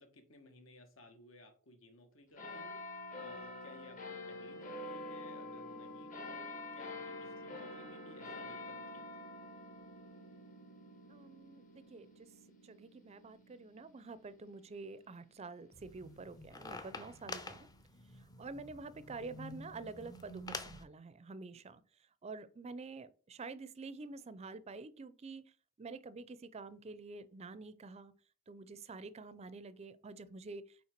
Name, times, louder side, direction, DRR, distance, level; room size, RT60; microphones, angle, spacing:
voice 1, 0.0-2.8 3.2-9.1, left 2 dB, 70° left, 1.4 m, -59 dB
sound 1, 2.4-15.2 15.9-16.0, left 2 dB, 40° left, 1.3 m, -47 dB
voice 2, 11.1-12.3 12.6-17.6 18.4-21.8 22.2-25.5 25.8-28.1 28.5-30.9, right 3 dB, 30° right, 0.4 m, -48 dB
sound 2, 15.7-20.8, left 2 dB, 20° left, 0.6 m, -48 dB
5.7 x 4.5 x 4.4 m
head